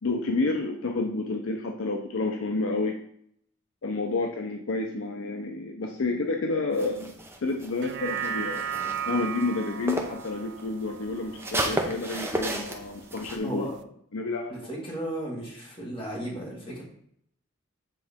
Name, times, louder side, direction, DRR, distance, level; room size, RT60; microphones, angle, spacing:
voice 1, 0.0-3.0 3.8-7.1 7.4-8.7 9.0-13.7 14.1-14.7, left 3 dB, 65° left, 3 dB, 0.6 m, -30 dB
sound 1, 6.7-10.3 10.6-13.4, right 1 dB, 10° right, 0.6 m, -33 dB
sound 2, 7.7-12.3 12.7-12.8, right 8 dB, 55° right, 0.3 m, -35 dB
voice 2, 13.4-13.7 14.5-16.8, right 1 dB, 25° left, -5 dB, 2.1 m, -35 dB
7.5 x 3.7 x 3.6 m, 0.68 s
head